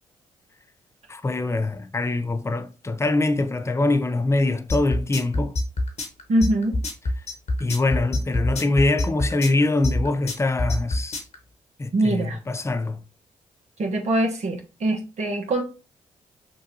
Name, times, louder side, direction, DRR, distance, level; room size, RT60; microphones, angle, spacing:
voice 1, 1.1-5.5 7.6-11.2 11.8-13.0, left 2 dB, 20° left, 0.6 m, -23 dB
sound 1, 4.7-11.3, left 1 dB, 55° left, 1.4 m, -25 dB
voice 2, 6.3-6.7 11.9-12.4 13.8-15.6, right 1 dB, 55° right, 1.2 m, -23 dB
6.5 x 2.6 x 2.8 m
supercardioid pair, 45°, 14 cm